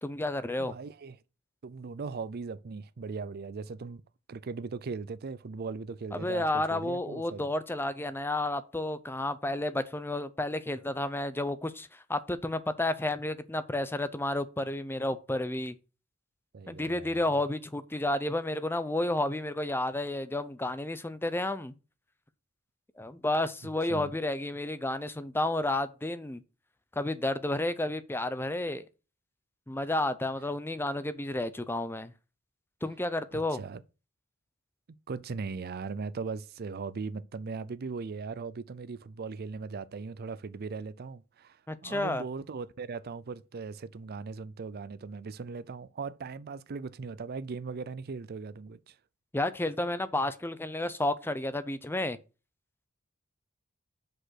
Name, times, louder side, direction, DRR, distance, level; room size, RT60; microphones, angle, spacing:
voice 1, 0.0-0.8 6.1-15.7 16.7-21.7 23.0-26.4 27.0-28.9 29.7-32.1 32.8-33.6 41.7-42.2 49.3-52.2, left 1 dB, 10° left, 0.6 m, -31 dB
voice 2, 0.6-1.2 1.6-4.0 4.3-7.5 16.5-17.2 23.9-24.1 33.3-33.8 35.1-49.0, right 4 dB, 50° right, 0.5 m, -39 dB
6.0 x 5.3 x 6.3 m
head